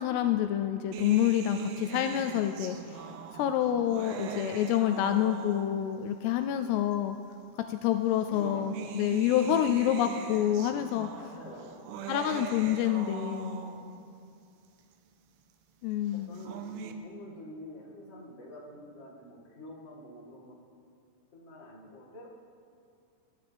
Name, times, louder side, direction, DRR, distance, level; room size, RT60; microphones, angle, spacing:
voice 1, 0.0-3.0 3.3-7.2 7.7-11.1 12.1-13.6 15.8-16.3, left 11 dB, 85° left, 8 dB, 2.4 m, -28 dB
sound 1, 0.9-6.0 6.9-7.0 8.1-14.0 16.2-16.9, right 7 dB, 85° right, 2.9 m, -41 dB
voice 2, 8.2-10.0 11.2-12.3 16.1-20.6 21.3-22.3, left 1 dB, 45° left, -5 dB, 0.8 m, -48 dB
21.5 x 12.0 x 3.4 m, 2.4 s
omnidirectional pair, 5.1 m